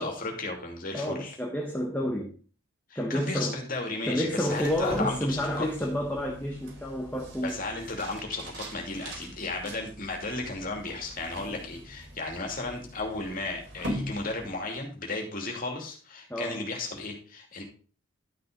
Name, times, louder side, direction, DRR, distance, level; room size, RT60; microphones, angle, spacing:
voice 1, 0.0-1.4 2.9-5.7 7.4-17.6, left 2 dB, 40° left, 2.6 m, -34 dB
voice 2, 0.9-2.3 2.9-3.6 4.1-7.6 16.3-16.6, equal, 10° left, 1.1 m, -30 dB
sound 1, 4.3-14.9, equal, 70° right, 4.4 m, -42 dB
12.0 x 6.1 x 3.8 m
head